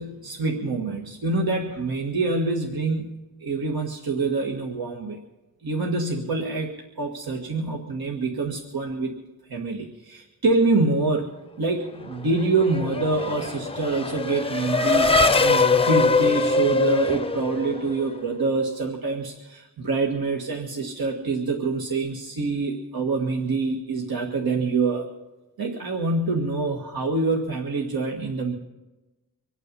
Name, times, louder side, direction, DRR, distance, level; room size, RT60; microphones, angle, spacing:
voice 1, 0.0-3.2 3.4-5.2 5.6-9.2 9.5-11.3 11.6-25.1 25.6-28.5, right 3 dB, 85° right, 0 dB, 1.8 m, -26 dB
Race car auto racing / Accelerating revving vroom, 12.1-18.2, left 3 dB, 15° left, 0.5 m, -22 dB
25.0 x 9.0 x 5.5 m, 1.0 s
wide cardioid pair, 110°, 36 cm